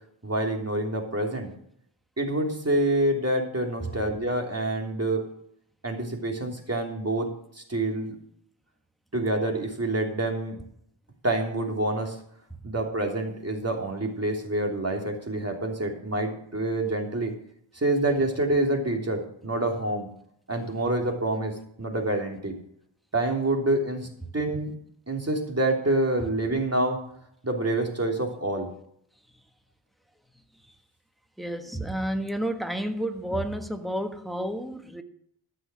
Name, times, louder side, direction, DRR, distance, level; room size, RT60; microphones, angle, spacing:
voice 1, 0.2-1.5 2.2-5.3 5.8-7.3 7.5-8.1 9.1-10.6 11.2-12.2 12.6-17.3 17.7-20.1 20.5-22.6 23.1-24.1 24.3-24.7 25.1-27.0 27.4-28.7, right 1 dB, 30° right, 3.2 m, -27 dB
voice 2, 31.4-35.0, right 1 dB, ahead, 1.5 m, -31 dB
14.0 x 6.4 x 6.2 m
cardioid pair, 60°, 50 cm